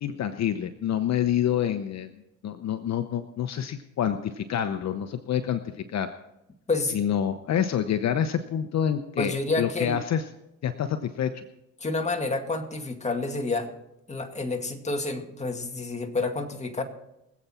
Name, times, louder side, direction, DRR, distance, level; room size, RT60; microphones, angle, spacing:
voice 1, 0.0-2.1 2.4-6.1 6.9-10.2 10.6-11.4, left 9 dB, 60° left, 9 dB, 0.9 m, -27 dB
voice 2, 9.2-10.0 11.8-13.7 14.1-16.8, left 3 dB, 20° left, 4 dB, 2.1 m, -29 dB
23.5 x 8.3 x 4.3 m, 0.88 s
cardioid pair, 90°, 30 cm